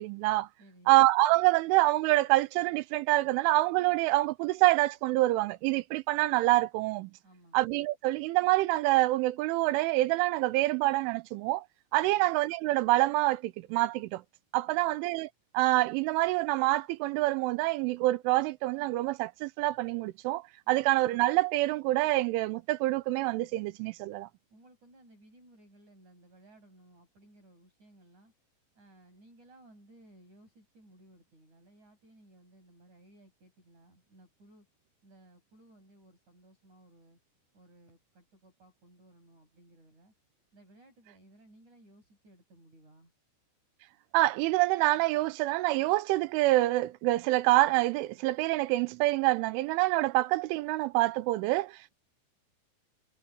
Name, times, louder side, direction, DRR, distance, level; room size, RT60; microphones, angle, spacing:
voice 1, 0.0-0.5 0.9-7.1 7.5-11.7 11.9-14.2 14.5-15.3 15.5-24.3 44.1-51.9, right 18 dB, 90° right, 3.3 m, -26 dB
voice 2, 0.6-1.0 7.2-7.6 12.0-12.3 14.7-15.0 24.5-28.3 28.8-34.7 35.0-37.2 37.5-40.1 40.5-43.1, right 1 dB, 40° right, 8.9 m, -59 dB
omnidirectional pair, 5.5 m